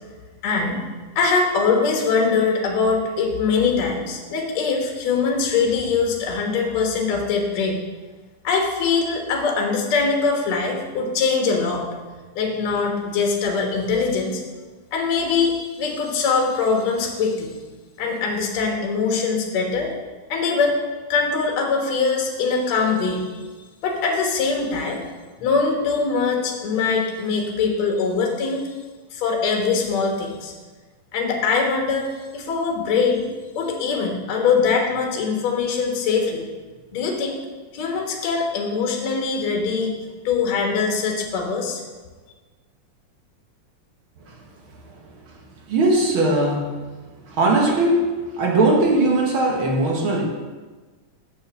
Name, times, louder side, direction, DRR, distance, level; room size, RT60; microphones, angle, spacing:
voice 1, 0.4-0.8 1.2-7.8 8.4-11.9 12.4-14.4 14.9-15.5 15.8-17.5 18.0-19.9 20.3-20.8 21.1-23.2 23.8-25.0 25.4-28.7 29.1-30.5 31.1-32.1 32.3-33.2 33.6-36.5 36.9-37.4 37.7-39.9 40.2-41.8, left 5 dB, 65° left, 1 dB, 2.5 m, -22 dB
voice 2, 45.7-46.9 47.3-50.2, right 2 dB, 55° right, 0 dB, 1.7 m, -19 dB
6.8 x 6.6 x 6.8 m, 1.3 s
omnidirectional pair, 3.5 m